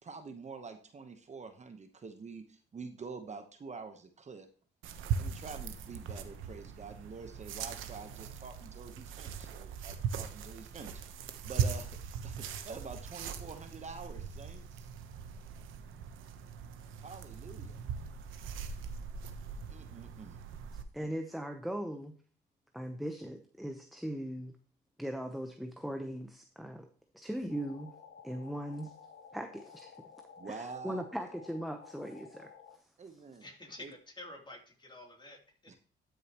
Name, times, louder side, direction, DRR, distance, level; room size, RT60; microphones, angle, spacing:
voice 1, 0.0-4.5 5.2-14.9 17.0-17.8 19.7-20.4 30.4-31.0 33.0-33.5 33.8-33.9 35.7-35.8, right 4 dB, 35° right, 7 dB, 1.1 m, -47 dB
sound 1, 4.8-20.8, right 7 dB, 80° right, 1.0 m, -40 dB
voice 2, 20.9-22.2 22.7-24.6 25.0-26.9 27.1-27.9 28.2-28.9 29.3-29.9 30.5-32.5, equal, ahead, 5 dB, 0.9 m, -39 dB
sound 2, 27.5-32.8, left 6 dB, 55° left, 1.4 m, -54 dB
voice 3, 33.4-35.8, left 2 dB, 25° left, 1 dB, 3.1 m, -49 dB
12.5 x 6.6 x 3.0 m, 0.43 s
cardioid pair, 90°, 20 cm